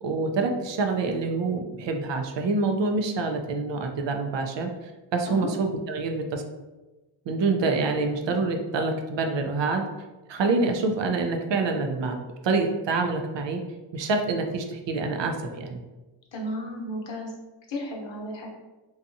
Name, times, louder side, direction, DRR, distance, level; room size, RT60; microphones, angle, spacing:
voice 1, 0.0-6.4 7.3-9.8 10.3-13.6 13.9-15.8, right 3 dB, 65° right, 4 dB, 0.5 m, -26 dB
voice 2, 16.3-17.3 17.7-18.5, left 1 dB, 65° left, 0 dB, 0.8 m, -33 dB
2.7 x 2.3 x 2.5 m, 1.1 s
cardioid pair, 55°, 48 cm